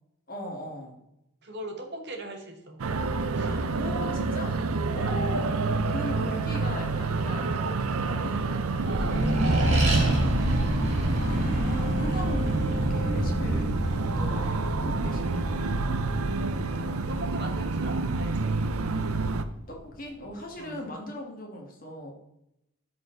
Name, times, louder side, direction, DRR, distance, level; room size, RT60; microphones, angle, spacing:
voice 1, 0.3-1.0 3.4-4.6 4.9-5.6 5.9-9.3 11.1-13.7 14.0-16.0 19.7-22.1, left 1 dB, 40° left, 1 dB, 1.7 m, -39 dB
voice 2, 1.4-2.8 3.3-3.7 8.8-10.4 16.7-18.5 20.6-20.8, right 1 dB, 50° right, 4 dB, 1.3 m, -39 dB
sound 1, 2.8-19.4, right 3 dB, 85° right, 0.6 m, -28 dB
Accelerating revving vroom, 8.7-19.6, equal, 30° right, 2.2 m, -28 dB
13.0 x 4.4 x 3.9 m, 0.83 s
head